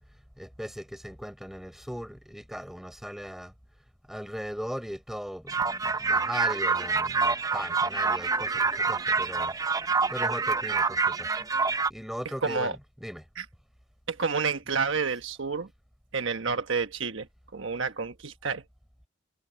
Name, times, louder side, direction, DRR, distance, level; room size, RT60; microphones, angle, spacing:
voice 1, 0.4-3.5 4.1-9.5 10.1-11.3 11.9-13.3, equal, ahead, 6.5 m, -38 dB
sound 1, 5.5-11.9, right 4 dB, 15° right, 0.5 m, -27 dB
voice 2, 12.4-12.8 13.4-13.5 14.1-15.7 16.1-17.3 17.5-18.6, right 5 dB, 70° right, 1.2 m, -29 dB
head